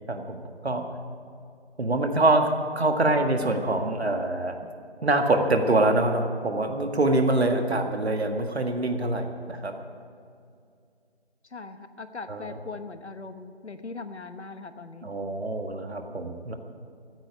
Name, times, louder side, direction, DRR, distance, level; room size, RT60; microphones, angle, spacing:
voice 1, 0.1-0.9 1.8-2.5 2.8-4.6 5.0-9.7 12.3-12.5 15.0-16.6, right 2 dB, 70° right, 5 dB, 1.7 m, -25 dB
voice 2, 11.5-15.1, left 3 dB, 80° left, 10 dB, 1.2 m, -40 dB
15.0 x 9.5 x 8.7 m, 2.4 s
figure-of-eight pair, 170°, 33 cm